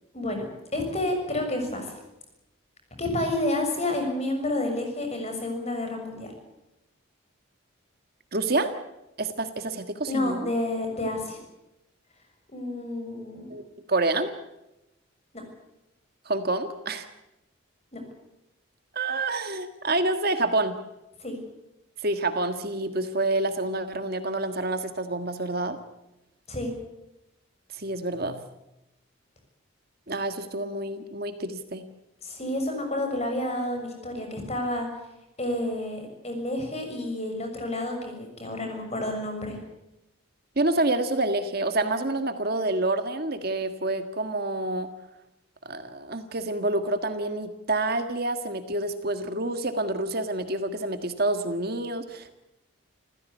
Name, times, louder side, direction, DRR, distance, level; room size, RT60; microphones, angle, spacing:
voice 1, 0.1-1.9 3.0-6.3 10.1-11.4 12.5-13.5 17.9-18.0 21.2-21.4 26.5-26.7 32.2-34.9 35.4-39.6, left 1 dB, 30° left, 4 dB, 6.6 m, -30 dB
voice 2, 8.3-8.7 9.2-10.5 13.5-13.6 13.9-14.3 16.3-17.1 18.9-20.7 22.0-25.8 27.7-28.5 30.1-31.8 40.6-44.9 45.7-52.3, right 2 dB, 45° right, 8 dB, 1.6 m, -28 dB
28.0 x 15.5 x 8.3 m, 0.92 s
head